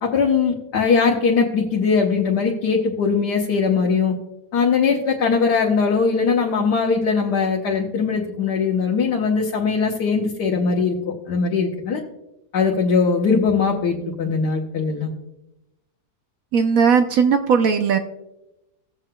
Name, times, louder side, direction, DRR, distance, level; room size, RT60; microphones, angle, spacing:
voice 1, 0.0-4.1 4.5-12.0 12.5-15.1, left 5 dB, 90° left, -2 dB, 1.6 m, -20 dB
voice 2, 16.5-18.0, right 6 dB, 70° right, 7 dB, 1.0 m, -17 dB
17.5 x 7.5 x 2.2 m, 0.93 s
omnidirectional pair, 1.7 m